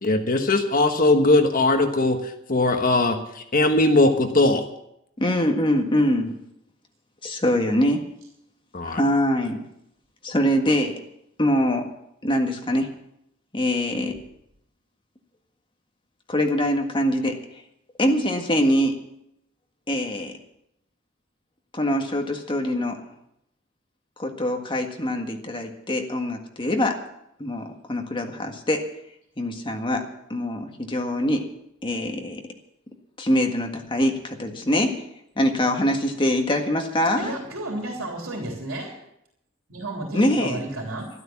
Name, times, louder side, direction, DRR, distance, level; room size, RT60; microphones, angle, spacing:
voice 1, 0.0-2.2 2.5-3.2 3.5-4.6 8.7-9.0, left 2 dB, 45° left, 6 dB, 1.3 m, -19 dB
voice 2, 5.2-6.4 7.2-8.1 8.9-9.6 10.2-10.9 11.4-11.9 12.2-12.9 13.5-14.2 16.3-17.4 18.0-19.0 19.9-20.3 21.7-23.0 24.2-27.0 27.4-28.8 29.4-30.0 30.3-31.5 31.8-32.4 33.2-35.0 35.4-37.3 40.1-40.6, left 1 dB, 25° left, 3 dB, 1.7 m, -23 dB
voice 3, 37.2-38.9 39.7-41.1, right 1 dB, 85° right, -1 dB, 3.4 m, -32 dB
12.5 x 12.5 x 7.2 m, 0.79 s
head